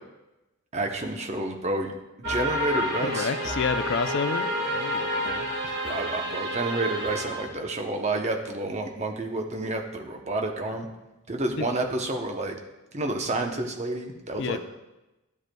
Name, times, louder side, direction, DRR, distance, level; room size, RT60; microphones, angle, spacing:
voice 1, 0.7-1.9 2.3-3.3 5.8-10.9 11.3-12.6 12.9-14.6, right 2 dB, 30° right, 3 dB, 0.7 m, -29 dB
sound 1, 2.2-7.5, equal, 50° right, 1.3 m, -29 dB
voice 2, 3.0-5.8 11.6-11.7 14.4-14.6, left 5 dB, 50° left, 11 dB, 0.4 m, -30 dB
12.0 x 7.8 x 2.3 m, 1.0 s
head